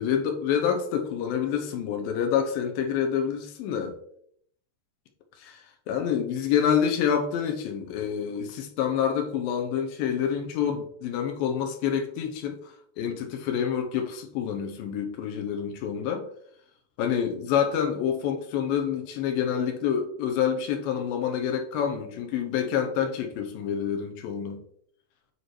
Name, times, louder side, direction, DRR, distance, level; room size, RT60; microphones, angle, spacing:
voice 1, 0.0-4.0 5.4-16.3 17.0-24.6, left 8 dB, 80° left, 5 dB, 2.6 m, -27 dB
9.4 x 4.5 x 3.2 m, 0.67 s
omnidirectional pair, 4.2 m